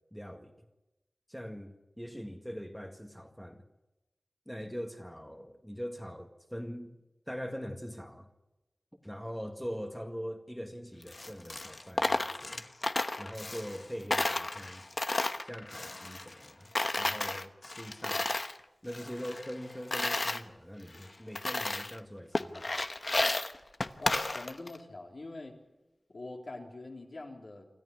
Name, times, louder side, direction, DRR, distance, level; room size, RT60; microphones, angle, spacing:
voice 1, 0.1-0.5 1.3-3.6 4.5-6.9 7.3-8.3 9.0-12.7 13.2-14.8 15.4-18.3 18.8-22.8, equal, 5° left, 1.9 m, -42 dB
Coin (dropping), 11.0-13.8 14.1-16.5 16.8-18.6 18.9-20.4 20.9-21.0 21.4-22.0 22.3-24.8, left 2 dB, 45° left, 1.1 m, -33 dB
voice 2, 24.0-25.6 26.1-27.7, left 2 dB, 60° left, 3.8 m, -44 dB
27.0 x 14.0 x 9.9 m
wide cardioid pair, 80°, 0 cm